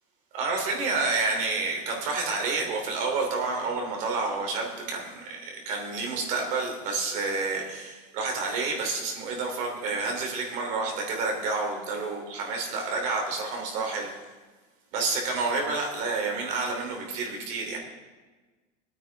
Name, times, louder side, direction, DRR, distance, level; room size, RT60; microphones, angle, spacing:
voice 1, 0.3-14.2 14.9-17.8, right 3 dB, 45° right, 1 dB, 2.9 m, -29 dB
22.5 x 9.0 x 3.4 m, 1.3 s
supercardioid pair, 160°, 18 cm